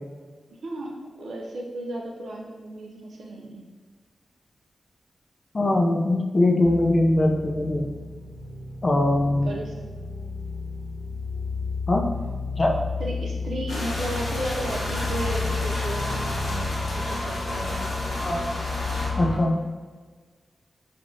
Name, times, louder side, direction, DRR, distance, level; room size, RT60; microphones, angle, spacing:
voice 1, 0.5-3.7 9.4-9.8 13.0-17.9, right 1 dB, 80° right, 0 dB, 0.4 m, -34 dB
voice 2, 5.5-7.9 8.8-9.5 11.9-12.1 12.6-12.8 18.2-18.4 19.2-19.6, left 1 dB, 35° left, 1 dB, 0.4 m, -21 dB
sound 1, 6.6-19.3, left 4 dB, 15° left, 0.8 m, -32 dB
sound 2, 13.7-19.1, left 1 dB, 85° left, 0.8 m, -34 dB
sound 3, 14.3-19.4, equal, 65° left, 1.1 m, -35 dB
3.3 x 2.4 x 2.6 m, 1.5 s
wide cardioid pair, 105°, 0 cm